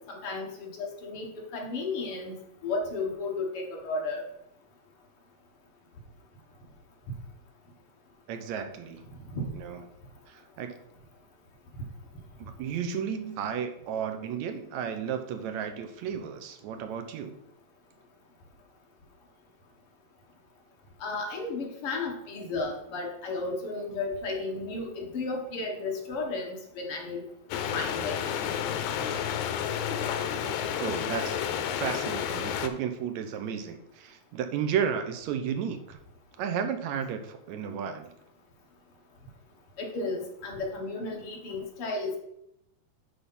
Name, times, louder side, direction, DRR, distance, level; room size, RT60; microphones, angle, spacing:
voice 1, 0.1-1.3 1.5-4.2 9.3-9.5 21.0-27.2 27.7-28.2 39.8-42.2, left 3 dB, 55° left, 0 dB, 2.0 m, -33 dB
voice 2, 8.3-9.0 9.5-9.8 10.3-10.8 12.4-17.3 30.8-36.0 36.4-38.1, right 7 dB, 75° right, 7 dB, 2.0 m, -33 dB
sound 1, 27.5-32.7, left 9 dB, 85° left, 2.2 m, -31 dB
10.0 x 3.7 x 5.4 m, 0.79 s
omnidirectional pair, 3.4 m